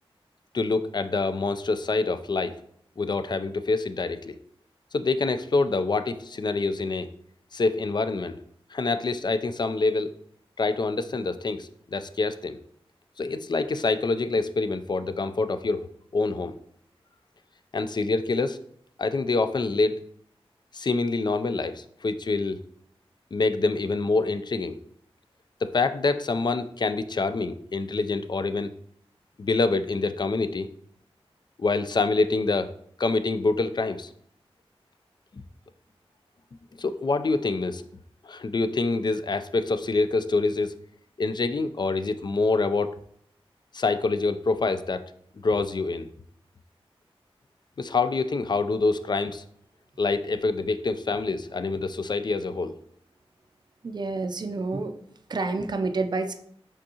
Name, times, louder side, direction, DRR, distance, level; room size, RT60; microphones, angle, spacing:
voice 1, 0.5-2.5 3.0-4.3 4.9-7.1 7.5-8.4 8.7-10.1 10.6-12.6 13.2-16.5 17.7-18.6 19.0-19.9 20.7-22.6 23.3-24.8 25.6-28.7 29.4-30.7 31.6-32.7 33.0-34.1 36.8-37.8 38.2-40.7 41.2-42.9 43.7-45.1 45.4-46.1 47.8-49.4 50.0-52.7, left 3 dB, 45° left, 11 dB, 0.3 m, -26 dB
voice 2, 53.8-54.9 55.3-56.3, right 3 dB, 45° right, 7 dB, 0.4 m, -28 dB
5.1 x 3.6 x 2.8 m, 0.66 s
wide cardioid pair, 60°, 10 cm